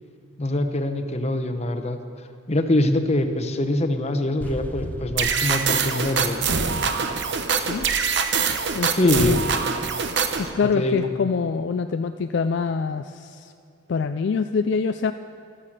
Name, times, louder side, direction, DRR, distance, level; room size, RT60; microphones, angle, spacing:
voice 1, 0.4-2.0 2.5-6.4 8.8-9.4 10.6-11.1, left 1 dB, 30° left, 7 dB, 0.9 m, -24 dB
sound 1, 4.4-7.4, equal, 10° left, 0.6 m, -37 dB
sound 2, 5.2-10.5, right 5 dB, 60° right, 0.9 m, -24 dB
voice 2, 7.6-7.9 8.7-9.4 10.4-13.5 13.9-15.1, left 5 dB, 60° left, 9 dB, 0.4 m, -25 dB
13.0 x 13.0 x 6.5 m, 2.4 s
head